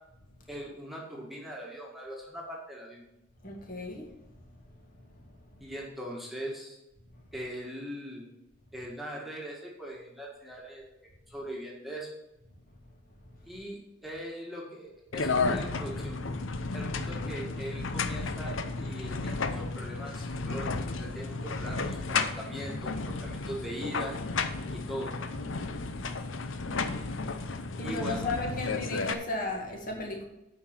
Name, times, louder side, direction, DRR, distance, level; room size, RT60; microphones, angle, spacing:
voice 1, 0.5-3.0 5.6-6.8 7.3-8.3 8.7-10.9 11.3-12.1 13.4-16.2 16.7-24.1 24.7-25.1 27.8-28.3, equal, ahead, -3 dB, 1.7 m, -40 dB
voice 2, 3.4-4.1 26.4-26.6 27.0-27.1 27.8-30.2, left 2 dB, 45° left, 0 dB, 1.9 m, -35 dB
sound 1, 15.1-29.1, left 3 dB, 75° left, 0.7 m, -33 dB
8.6 x 5.4 x 7.3 m, 0.92 s
head